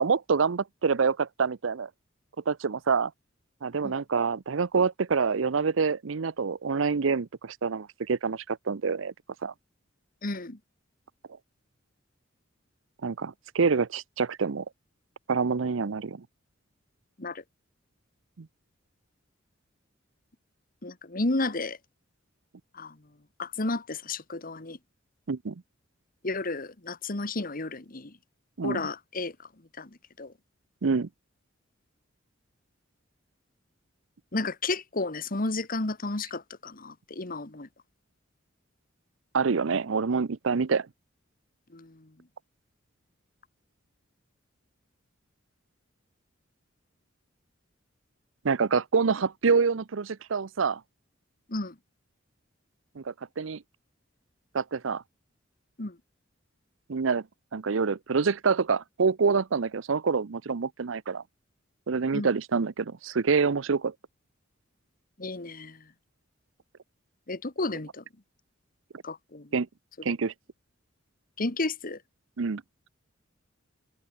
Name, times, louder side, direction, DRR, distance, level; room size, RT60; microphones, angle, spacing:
voice 1, 0.0-1.9 2.5-3.1 3.6-9.1 9.4-9.5 13.0-14.6 15.3-16.2 18.4-18.5 25.3-25.5 28.6-28.8 30.8-31.1 39.3-40.9 48.4-50.8 53.0-53.6 54.5-55.0 56.9-57.2 57.5-61.2 61.9-63.9 69.5-69.7 70.0-70.3 72.4-72.6, right 5 dB, 80° right, 0.6 m, -26 dB
voice 2, 10.2-10.6 17.2-17.4 20.8-21.8 22.7-23.0 23.4-24.8 26.2-28.1 28.6-29.4 29.8-30.3 34.3-37.7 41.7-42.1 51.5-51.8 55.8-56.0 62.1-62.3 65.2-65.9 67.3-68.0 69.0-69.5 70.1-70.2 71.4-72.0, left 2 dB, 45° left, 1.7 m, -32 dB
head